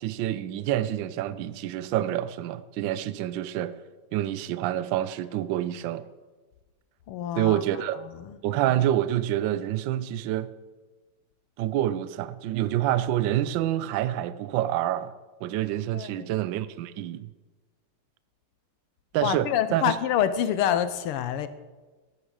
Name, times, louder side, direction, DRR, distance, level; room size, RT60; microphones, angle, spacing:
voice 1, 0.0-3.7 4.1-6.0 7.4-8.0 8.4-10.5 11.6-15.1 15.4-17.3 19.1-20.0, right 12 dB, 70° right, 15 dB, 1.2 m, -27 dB
voice 2, 7.1-7.6 8.0-8.4 15.9-16.3 19.2-21.5, left 10 dB, 85° left, 13 dB, 1.7 m, -27 dB
13.0 x 9.8 x 6.4 m, 1.3 s
omnidirectional pair, 2.4 m